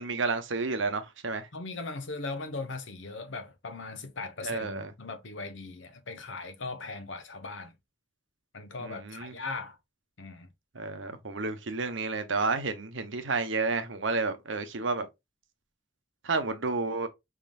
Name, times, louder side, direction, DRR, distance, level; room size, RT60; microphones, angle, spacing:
voice 1, 0.0-1.5 4.4-4.9 8.8-9.3 10.7-15.1 16.2-17.1, right 3 dB, 75° right, 0.9 m, -31 dB
voice 2, 1.5-7.7 8.5-9.8 10.2-10.5, left 3 dB, 75° left, 0.9 m, -39 dB
5.7 x 3.7 x 2.4 m
head